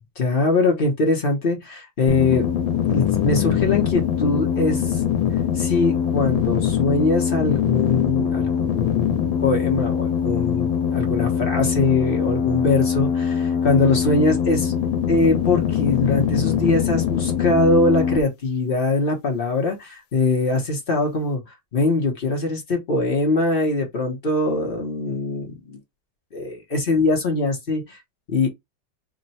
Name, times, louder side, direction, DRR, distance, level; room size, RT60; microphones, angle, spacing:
voice 1, 0.2-2.5 2.9-5.0 5.5-14.7 15.1-21.4 21.7-25.8 26.3-28.0 28.3-28.5, left 3 dB, 45° left, 0.7 m, -22 dB
sound 1, 2.1-18.2, left 8 dB, 80° left, 1.5 m, -22 dB
3.6 x 2.1 x 4.1 m
omnidirectional pair, 2.1 m